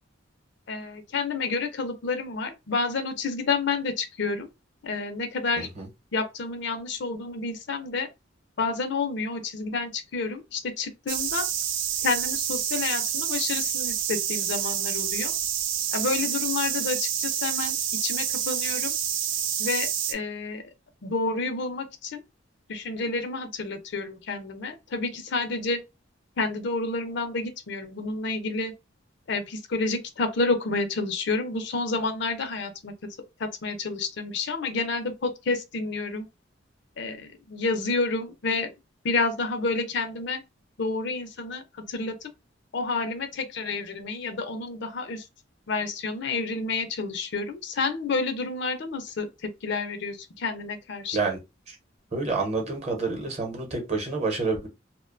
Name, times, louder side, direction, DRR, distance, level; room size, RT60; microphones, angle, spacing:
voice 1, 0.7-4.5 4.8-5.7 6.1-8.1 8.6-11.5 12.0-15.4 15.9-17.8 18.0-19.0 19.6-20.6 21.0-22.2 22.7-25.8 26.4-28.7 29.3-32.9 33.4-36.3 37.0-38.7 39.0-40.4 40.8-41.6 41.9-42.3 42.7-45.3 45.7-51.2, left 3 dB, 65° left, 0.5 m, -29 dB
sound 1, 11.1-20.1, right 9 dB, 75° right, 0.4 m, -28 dB
voice 2, 52.1-54.7, right 3 dB, 35° right, 0.9 m, -28 dB
2.5 x 2.2 x 2.4 m
head